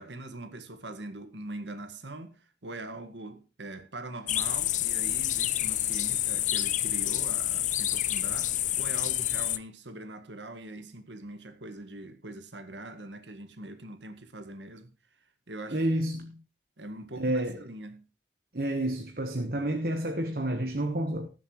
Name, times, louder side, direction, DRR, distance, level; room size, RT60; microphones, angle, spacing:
voice 1, 0.0-14.9 15.5-16.0 16.8-18.0, right 2 dB, 90° right, 1.8 m, -42 dB
sound 1, 4.3-9.6, left 13 dB, 45° left, 0.5 m, -28 dB
voice 2, 15.7-16.4 17.2-17.6 18.5-21.3, right 1 dB, 55° right, 1.3 m, -29 dB
19.5 x 7.3 x 3.2 m
head